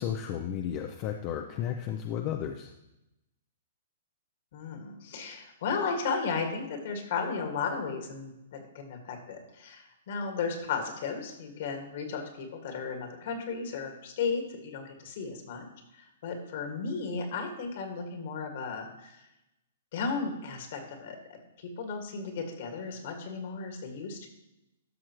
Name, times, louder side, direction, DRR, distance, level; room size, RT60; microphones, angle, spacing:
voice 1, 0.0-2.7, left 9 dB, 40° left, 4 dB, 0.6 m, -33 dB
voice 2, 4.5-15.7 16.0-19.2 19.9-24.3, left 5 dB, 60° left, 4 dB, 1.9 m, -35 dB
13.0 x 6.2 x 3.0 m, 0.90 s
hypercardioid pair, 130°, 0 cm